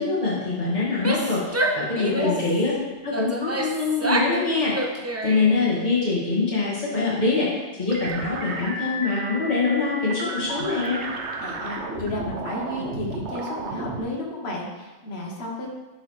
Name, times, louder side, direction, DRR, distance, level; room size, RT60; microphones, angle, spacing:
voice 1, 0.0-2.7 3.0-4.9 5.2-11.0, left 3 dB, 40° left, -8 dB, 2.1 m, -24 dB
Female speech woman speaking / Yell, 0.9-2.5 3.1-4.4 4.7-5.7, right 1 dB, 20° right, 0.4 m, -28 dB
voice 2, 2.0-2.4 11.4-15.7, left 1 dB, 60° left, -1 dB, 1.5 m, -32 dB
sound 1, 7.9-14.0, right 2 dB, 75° right, 1.1 m, -33 dB
10.5 x 4.6 x 3.2 m, 1.2 s
omnidirectional pair, 1.2 m